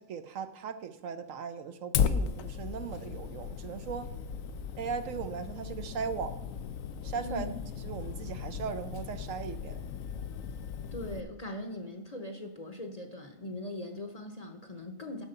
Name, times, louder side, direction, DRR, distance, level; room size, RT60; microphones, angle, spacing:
voice 1, 0.1-4.1 4.8-6.4 7.0-7.5 7.8-9.8, right 6 dB, 70° right, 10 dB, 1.1 m, -38 dB
Fire, 1.9-11.2, left 7 dB, 75° left, 1.0 m, -36 dB
voice 2, 7.2-7.6 10.9-15.2, left 1 dB, 35° left, 5 dB, 0.8 m, -40 dB
12.0 x 4.7 x 6.6 m, 0.91 s
omnidirectional pair, 1.5 m